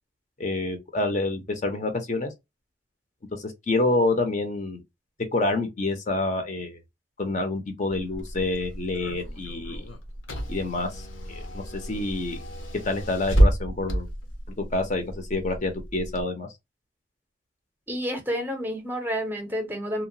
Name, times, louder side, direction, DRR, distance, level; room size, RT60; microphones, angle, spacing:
voice 1, 0.4-2.3 3.3-4.8 5.3-6.8 7.2-9.8 10.5-12.4 12.8-14.1 14.6-16.5, left 2 dB, 40° left, 0.6 m, -27 dB
Car / Engine, 7.9-16.2, right 1 dB, 80° left, 0.8 m, -29 dB
voice 2, 17.9-20.1, equal, 10° right, 0.6 m, -29 dB
2.8 x 2.1 x 2.6 m
head